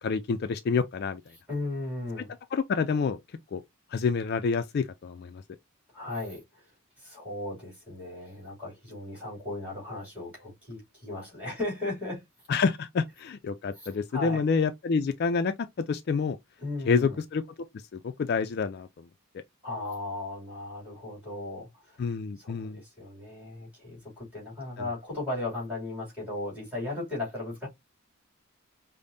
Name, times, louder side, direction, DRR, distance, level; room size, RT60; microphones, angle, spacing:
voice 1, 0.0-1.2 2.5-3.2 3.5-3.6 3.9-5.4 12.5-16.4 16.9-17.4 17.7-18.9 22.0-22.8, left 5 dB, 45° left, 0.3 m, -28 dB
voice 2, 1.5-2.3 5.9-6.7 7.0-12.2 13.7-14.4 16.6-17.2 19.6-27.7, left 2 dB, 5° right, 2.6 m, -36 dB
5.2 x 2.0 x 2.6 m
head